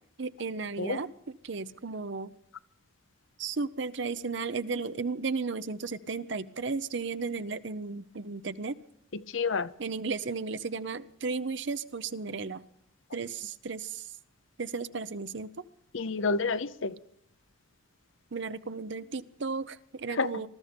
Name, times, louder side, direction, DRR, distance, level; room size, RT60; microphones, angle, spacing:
voice 1, 0.2-2.3 3.4-8.8 9.8-12.6 13.1-14.2 14.6-15.5 18.3-20.5, right 4 dB, 60° right, 13 dB, 0.7 m, -34 dB
voice 2, 9.1-9.7 15.9-17.0 20.1-20.3, left 4 dB, 70° left, 14 dB, 0.7 m, -29 dB
20.5 x 13.5 x 5.2 m, 0.71 s
head